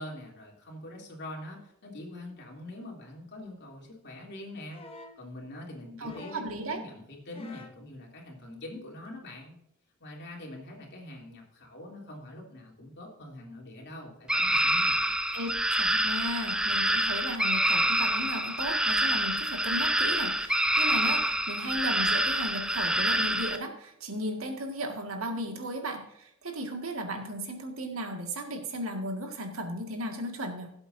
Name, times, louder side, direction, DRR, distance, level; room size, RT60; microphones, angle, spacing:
voice 1, 0.0-4.8 5.2-9.5 10.0-14.9, left 1 dB, 55° left, -1 dB, 3.1 m, -44 dB
sound 1, 4.7-5.2 6.0-6.6 7.3-7.8 9.0-9.1, left 2 dB, 25° left, 1.1 m, -47 dB
voice 2, 6.0-6.8 15.3-30.7, equal, 85° right, 4 dB, 2.0 m, -35 dB
sound 2, 14.3-23.6, right 1 dB, 5° right, 0.7 m, -27 dB
17.0 x 7.8 x 2.7 m, 0.76 s
head